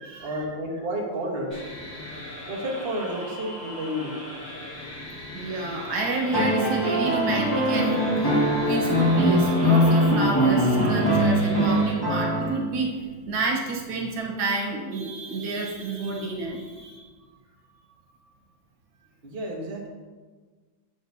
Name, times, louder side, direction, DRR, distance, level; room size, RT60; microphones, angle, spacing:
voice 1, 0.2-1.6 2.5-4.2 19.2-19.9, equal, 35° right, -1 dB, 1.2 m, -31 dB
sound 1, 1.5-11.9, left 1 dB, 40° left, 2.9 m, -39 dB
voice 2, 5.3-17.1, right 3 dB, 85° right, -1 dB, 2.0 m, -29 dB
sound 2, 6.3-12.8 14.2-14.3, equal, 15° left, 1.2 m, -22 dB
8.6 x 7.1 x 2.7 m, 1.4 s
omnidirectional pair, 2.2 m